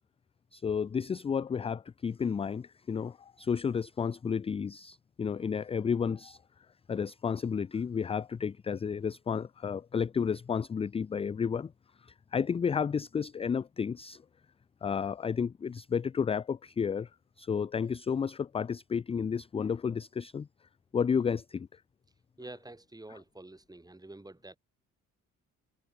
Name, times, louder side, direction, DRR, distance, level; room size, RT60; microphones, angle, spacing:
voice 1, 0.5-6.4 6.9-11.7 12.0-14.2 14.8-17.1 17.4-20.5 20.9-21.8, left 6 dB, 20° left, 0.3 m, -32 dB
voice 2, 22.4-24.6, right 2 dB, 10° right, 4.4 m, -48 dB
cardioid pair, 90°, 30 cm